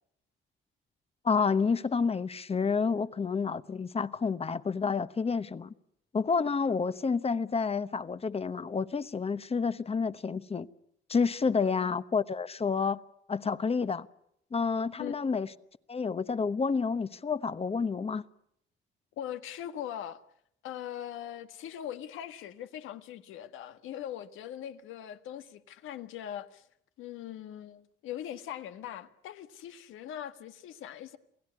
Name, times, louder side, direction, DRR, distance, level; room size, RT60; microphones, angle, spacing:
voice 1, 1.2-5.7 6.1-10.7 11.1-13.0 13.3-14.1 14.5-15.5 15.9-18.2, left 5 dB, 30° left, 1.0 m, -29 dB
voice 2, 11.6-11.9 15.0-15.1 19.2-20.2 20.6-26.6 27.0-31.2, left 10 dB, 90° left, 1.5 m, -41 dB
28.5 x 17.0 x 9.7 m
cardioid pair, 90°, 20 cm